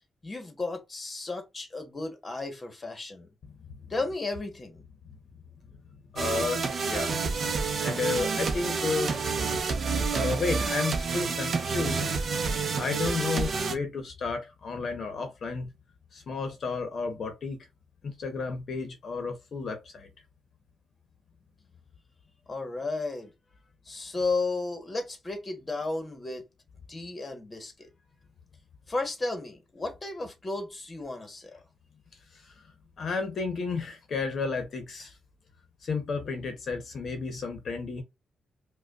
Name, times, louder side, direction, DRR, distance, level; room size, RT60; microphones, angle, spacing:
voice 1, 0.2-3.3 3.9-4.8 22.5-23.3 23.9-26.4 26.9-27.7 28.9-31.5, left 3 dB, 20° left, 1.0 m, -33 dB
voice 2, 6.1-7.1 7.8-9.1 10.1-12.0 12.8-15.7 16.1-17.6 18.0-20.1 32.6-32.7 33.0-35.1 35.8-38.0, left 4 dB, 50° left, 0.8 m, -32 dB
sound 1, 6.2-13.7, right 4 dB, 45° right, 0.7 m, -29 dB
5.0 x 2.2 x 2.3 m
cardioid pair, 145°, 0 cm